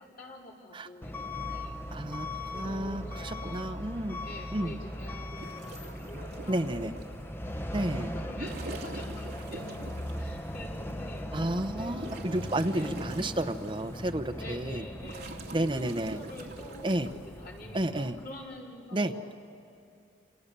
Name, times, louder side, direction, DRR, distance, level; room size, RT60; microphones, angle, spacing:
voice 1, 0.0-1.8 2.5-3.6 4.2-7.0 7.6-9.8 10.1-11.3 11.7-12.0 12.7-13.0 14.4-19.3, left 1 dB, 50° left, -3 dB, 4.5 m, -47 dB
Truck / Alarm, 1.0-18.3, left 1 dB, 10° left, 1.0 m, -39 dB
voice 2, 1.9-4.2 4.5-4.8 6.5-6.9 7.7-8.1 11.3-14.8 15.5-16.2 16.8-17.1 17.7-18.2 18.9-19.1, right 1 dB, 25° right, 7 dB, 0.8 m, -31 dB
sound 1, 5.4-7.1 8.2-10.3 10.9-11.0 11.5-14.0 14.4-17.1 18.3-18.6, right 2 dB, 55° right, 2.3 m, -44 dB
28.5 x 27.0 x 6.8 m, 2.6 s
head